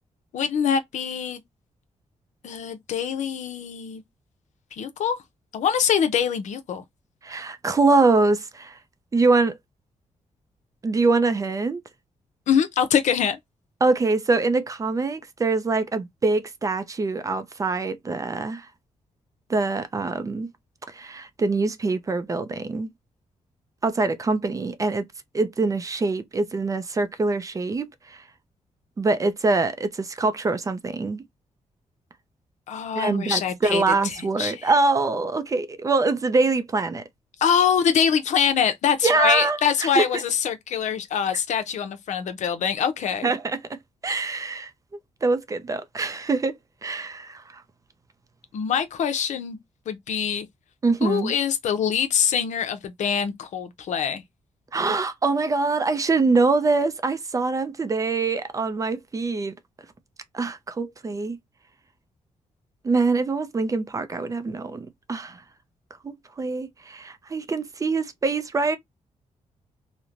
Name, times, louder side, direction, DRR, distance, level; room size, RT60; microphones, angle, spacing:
voice 1, 0.3-1.4 2.4-4.0 4.7-5.2 5.5-6.8 12.5-13.4 32.7-34.7 37.4-43.3 48.5-49.6 49.9-50.5 51.0-54.2, left 7 dB, 80° left, 0.6 m, -24 dB
voice 2, 7.2-8.8 9.1-9.5 10.8-11.8 13.8-18.7 19.5-20.5 20.9-22.9 23.8-25.0 25.3-28.2 29.0-31.2 33.0-37.0 39.0-40.1 41.5-41.6 43.2-43.6 44.0-44.7 45.2-46.5 46.8-47.6 50.8-51.3 54.7-59.5 60.3-61.4 62.8-65.4 66.0-68.8, right 3 dB, 30° right, 0.4 m, -24 dB
3.0 x 2.1 x 2.4 m
wide cardioid pair, 125°, 12 cm